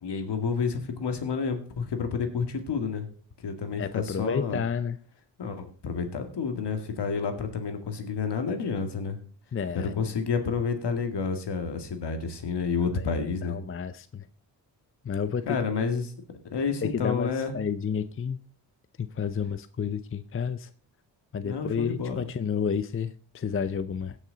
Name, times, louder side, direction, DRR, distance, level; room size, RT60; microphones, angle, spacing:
voice 1, 0.0-3.1 3.4-4.6 5.4-9.2 9.7-13.6 15.5-16.1 16.5-17.5 21.4-22.2, left 5 dB, 65° left, 2.0 m, -29 dB
voice 2, 3.8-5.0 9.5-10.1 12.9-13.1 13.4-14.3 15.0-15.6 16.8-18.4 19.0-20.7 21.3-24.2, left 6 dB, 30° left, 0.6 m, -31 dB
16.5 x 6.3 x 3.9 m
cardioid pair, 55°, 44 cm